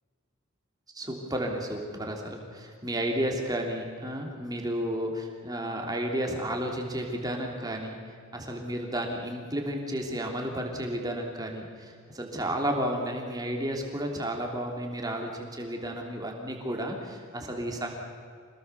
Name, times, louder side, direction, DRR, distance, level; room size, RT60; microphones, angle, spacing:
voice 1, 0.9-7.9 8.3-17.9, right 1 dB, 15° right, 1 dB, 3.2 m, -32 dB
26.5 x 19.0 x 7.0 m, 2.2 s
head